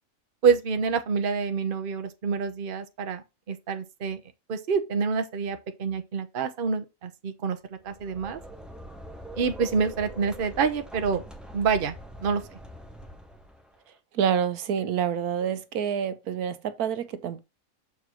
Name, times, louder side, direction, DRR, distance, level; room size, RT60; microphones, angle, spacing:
voice 1, 0.4-4.2 4.5-7.6 7.8-8.4 9.4-11.2 11.5-11.9 12.2-12.4, right 5 dB, 40° right, 1.0 m, -27 dB
sound 1, 7.8-13.8, equal, ahead, 1.3 m, -43 dB
voice 2, 14.1-17.4, right 8 dB, 80° right, 1.3 m, -27 dB
7.0 x 4.6 x 3.8 m
omnidirectional pair, 1.6 m